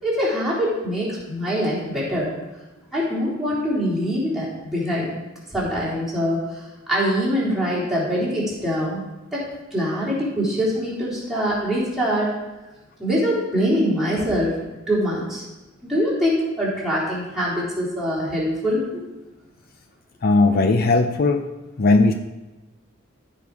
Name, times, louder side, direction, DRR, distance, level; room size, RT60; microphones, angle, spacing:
voice 1, 0.0-2.3 2.9-5.1 5.5-6.6 6.9-9.0 9.3-12.3 13.0-14.6 14.9-15.5 15.9-19.0, equal, ahead, -8 dB, 3.5 m, -23 dB
voice 2, 20.2-21.4 21.8-22.1, left 3 dB, 50° left, 7 dB, 0.5 m, -17 dB
14.5 x 5.3 x 4.7 m, 1.1 s
head